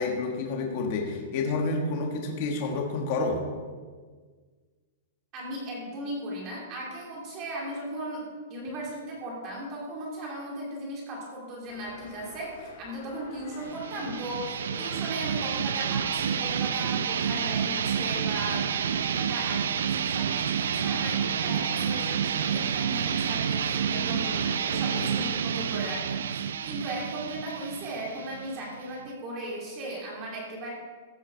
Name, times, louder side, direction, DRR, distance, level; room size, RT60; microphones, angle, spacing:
voice 1, 0.0-3.5, left 3 dB, 40° left, 1 dB, 1.4 m, -29 dB
voice 2, 5.3-30.7, right 1 dB, 25° right, -3 dB, 2.8 m, -37 dB
sound 1, 11.7-25.3, left 4 dB, 60° left, 1.9 m, -45 dB
sound 2, 13.7-29.1, right 8 dB, 85° right, 0.5 m, -29 dB
14.5 x 8.1 x 4.6 m, 1.5 s
supercardioid pair, 170°, 0 cm